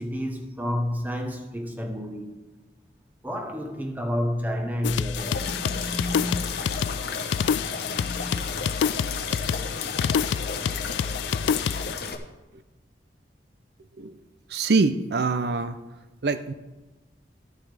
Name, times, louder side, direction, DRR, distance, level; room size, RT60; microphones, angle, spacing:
voice 1, 0.0-2.4 3.2-6.5 7.4-8.5, equal, 10° right, 1.0 m, -31 dB
sound 1, 4.8-11.9, left 7 dB, 85° left, 0.3 m, -28 dB
sound 2, 5.2-12.2, left 5 dB, 60° left, 0.9 m, -33 dB
voice 2, 14.5-15.7 16.2-16.5, right 3 dB, 60° right, 0.5 m, -24 dB
13.0 x 9.6 x 3.4 m
head